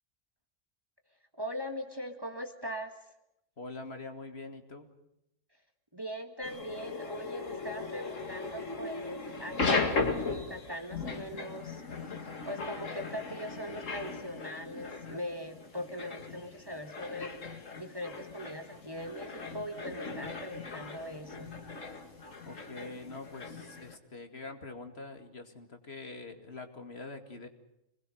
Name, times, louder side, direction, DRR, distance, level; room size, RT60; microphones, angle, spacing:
voice 1, 1.3-2.9 5.9-11.8 12.4-17.4 17.7-21.5, equal, 20° right, 6 dB, 1.7 m, -41 dB
voice 2, 3.6-4.9 22.4-27.5, left 3 dB, 50° left, 6 dB, 2.6 m, -44 dB
sound 1, 6.4-24.0, left 3 dB, 75° left, 2.5 m, -37 dB
27.0 x 20.5 x 6.5 m, 0.84 s
omnidirectional pair, 1.3 m